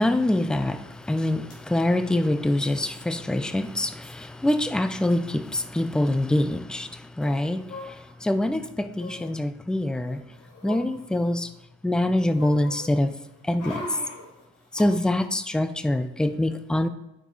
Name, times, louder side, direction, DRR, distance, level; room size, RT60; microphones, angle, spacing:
voice 1, 0.0-10.2 10.6-11.5 11.8-13.2 13.4-14.0 14.7-16.9, left 1 dB, 5° left, 0.4 m, -25 dB
sound 1, 1.0-1.1 1.3-1.6 2.6-3.0 3.4-3.5 3.6-4.2 5.1-5.2 5.4-5.6 7.2-8.3 8.9-9.3 9.9-11.6 11.9-14.8 15.2-15.3, left 1 dB, 90° left, 2.6 m, -42 dB
11.0 x 4.6 x 4.0 m
cardioid pair, 90°, 30 cm